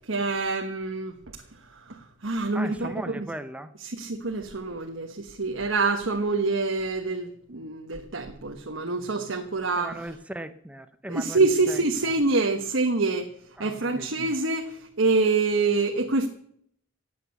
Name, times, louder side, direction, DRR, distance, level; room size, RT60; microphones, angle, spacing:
voice 1, 0.1-1.1 1.7-2.9 3.8-10.0 11.1-13.3 13.6-16.3, right 3 dB, 65° right, 4 dB, 1.2 m, -26 dB
voice 2, 2.5-3.7 9.7-12.1 13.6-14.1, right 1 dB, 5° right, 10 dB, 0.7 m, -38 dB
15.0 x 8.6 x 8.1 m, 0.67 s
head